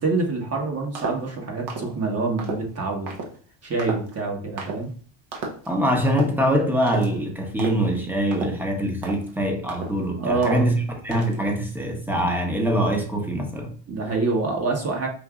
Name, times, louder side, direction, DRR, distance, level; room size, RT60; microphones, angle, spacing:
voice 1, 0.0-3.2 3.6-4.9 10.2-10.7 13.9-15.1, right 3 dB, 30° right, 1.2 m, -26 dB
sound 1, 0.9-1.3 1.7-1.9 2.4-2.6 3.1-3.3 3.8-4.2 4.6-4.8 5.3-5.7 6.1-6.4 6.8-7.1 7.6-7.9 8.3-8.7 9.0-9.3 9.7-10.1 10.4-10.8 11.1-11.4, right 3 dB, 55° right, 1.2 m, -32 dB
voice 2, 5.7-13.7, equal, 5° right, 0.9 m, -23 dB
5.3 x 2.7 x 2.4 m
supercardioid pair, 100°, 48 cm